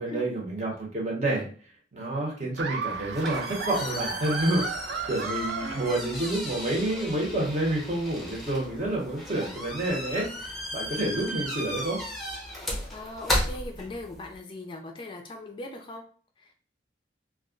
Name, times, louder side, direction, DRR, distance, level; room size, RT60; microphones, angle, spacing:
voice 1, 0.0-1.4 1.9-4.6 5.1-12.0, right 1 dB, 40° right, -1 dB, 0.8 m, -29 dB
Laughter, 2.6-6.6, right 5 dB, 70° right, 0.3 m, -34 dB
sound 1, 2.9-14.4, equal, ahead, 0.7 m, -35 dB
voice 2, 5.6-5.9 12.9-16.0 16.4-16.5, left 1 dB, 30° left, 3 dB, 0.3 m, -40 dB
2.3 x 2.0 x 3.6 m, 0.43 s
head